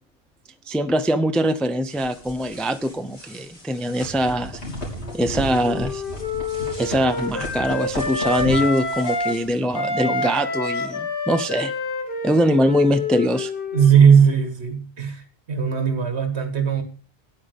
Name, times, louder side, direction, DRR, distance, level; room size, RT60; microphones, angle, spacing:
voice 1, 0.7-4.6 5.1-6.0 6.8-11.7 12.2-13.5, equal, ahead, 0.4 m, -22 dB
sound 1, 1.9-9.5, left 1 dB, 80° left, 3.7 m, -34 dB
Wind instrument woodwind instrument, 5.0-9.4 9.7-14.2, left 3 dB, 55° left, 2.0 m, -28 dB
voice 2, 13.7-15.2 15.5-16.8, right 7 dB, 75° right, 1.9 m, -17 dB
8.9 x 8.5 x 6.6 m
omnidirectional pair, 1.1 m